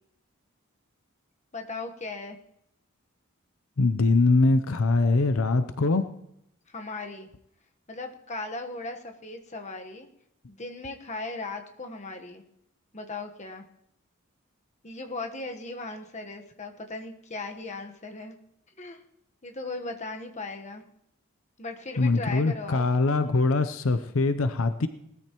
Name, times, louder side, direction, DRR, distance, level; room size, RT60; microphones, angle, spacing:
voice 1, 1.5-2.4 6.7-7.3 7.9-10.1 10.5-12.4 12.9-13.6 14.8-18.4 18.8-19.0 19.4-20.8 21.6-22.8, left 3 dB, 35° left, 4 dB, 1.2 m, -37 dB
voice 2, 3.8-6.1 22.0-24.9, left 3 dB, 75° left, 11 dB, 0.6 m, -23 dB
19.5 x 13.5 x 3.0 m, 0.78 s
head